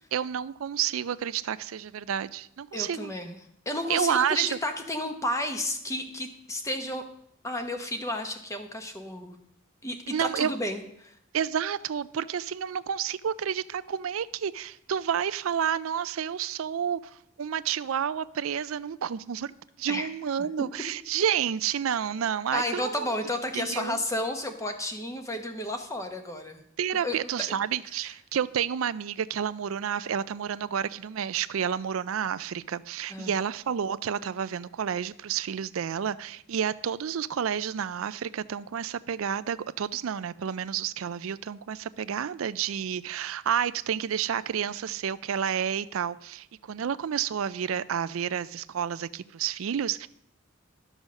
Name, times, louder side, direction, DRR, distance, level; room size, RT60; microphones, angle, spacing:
voice 1, 0.1-3.1 3.9-4.5 10.1-10.5 11.3-17.0 17.4-19.5 19.8-23.1 23.5-24.0 26.8-50.1, right 8 dB, 85° right, 16 dB, 0.4 m, -30 dB
voice 2, 2.7-3.4 3.7-7.0 7.4-9.4 9.8-11.2 19.9-20.1 22.5-26.6 26.9-27.2 28.0-28.1 33.1-33.3, left 1 dB, 15° left, 6 dB, 1.0 m, -32 dB
12.0 x 6.4 x 6.3 m, 0.71 s
head